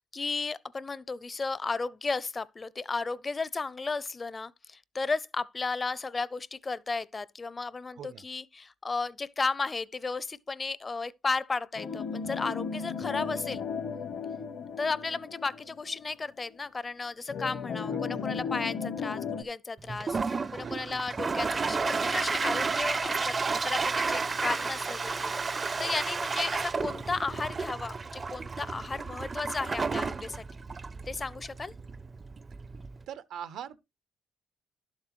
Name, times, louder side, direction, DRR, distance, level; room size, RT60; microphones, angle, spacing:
voice 1, 0.1-13.6 14.8-23.3 23.6-30.4 31.1-31.7, left 4 dB, 30° left, 0.5 m, -34 dB
sound 1, 11.7-16.1 16.5-16.6 17.3-19.4, left 6 dB, 65° left, 0.9 m, -35 dB
voice 2, 17.9-18.2 20.6-21.0 25.7-26.0 33.1-33.8, right 9 dB, 80° right, 0.7 m, -43 dB
Toilet flush, 19.9-33.0, right 4 dB, 35° right, 0.5 m, -32 dB
11.5 x 7.4 x 3.1 m
cardioid pair, 90°, 0 cm